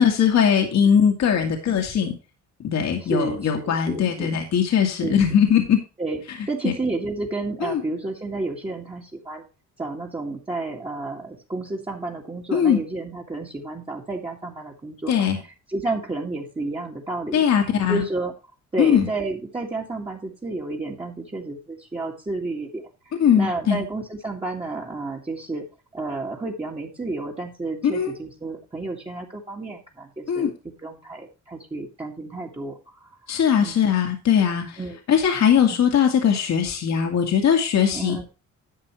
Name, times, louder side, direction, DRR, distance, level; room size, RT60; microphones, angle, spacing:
voice 1, 0.0-2.2 2.6-5.8 6.3-6.4 6.6-6.7 7.6-7.8 12.5-12.8 15.1-15.4 17.3-18.0 18.8-19.1 23.2-23.8 27.8-28.1 30.3-30.5 33.3-34.8 35.1-38.3, left 8 dB, 65° left, 3 dB, 2.1 m, -20 dB
voice 2, 3.0-4.3 5.0-5.2 6.0-6.2 6.5-9.4 9.8-15.3 15.7-17.4 17.9-18.3 18.7-22.8 23.3-25.6 25.9-30.5 30.8-33.0 33.6-33.8 34.8-35.0 35.7-35.8 37.8-38.3, right 2 dB, 20° right, -3 dB, 2.1 m, -31 dB
11.5 x 7.6 x 3.2 m, 0.32 s
cardioid pair, 90°, 30 cm